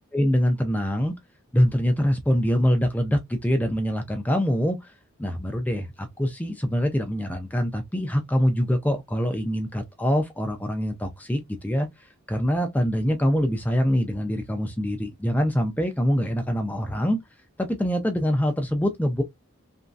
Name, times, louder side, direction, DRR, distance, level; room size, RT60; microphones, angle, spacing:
voice 1, 0.1-1.1 1.5-4.9 5.2-17.2 17.6-19.2, equal, 5° left, 0.3 m, -24 dB
3.0 x 2.5 x 2.3 m
head